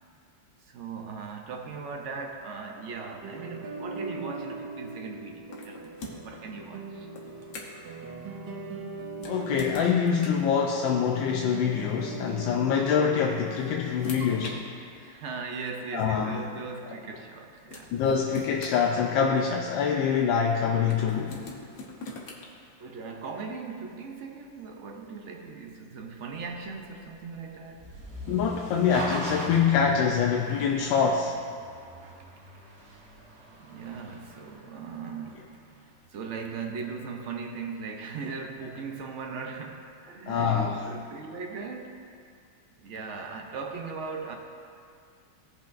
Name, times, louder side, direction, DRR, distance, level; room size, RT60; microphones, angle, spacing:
voice 1, 0.6-6.0 6.2-7.1 15.0-18.0 22.8-27.9 32.0-32.2 32.9-33.0 33.6-35.6 36.1-42.0 42.8-44.4, right 5 dB, 70° right, 2 dB, 0.7 m, -38 dB
sound 1, 3.2-14.6, right 4 dB, 90° right, 1.7 m, -40 dB
sound 2, 5.5-6.4 7.1-7.9 9.1-10.5 11.8-12.0 13.1-14.6 15.5-15.6 17.3-17.4 17.7-19.5 20.9-22.5, left 2 dB, 55° left, 1.4 m, -42 dB
voice 2, 9.3-14.7 15.9-16.4 17.9-21.4 28.3-31.4 40.3-40.8, left 7 dB, 85° left, 1 dB, 1.3 m, -25 dB
sound 3, 26.4-35.6, right 1 dB, 40° right, 1.2 m, -41 dB
16.5 x 5.7 x 2.5 m, 2.3 s
omnidirectional pair, 2.0 m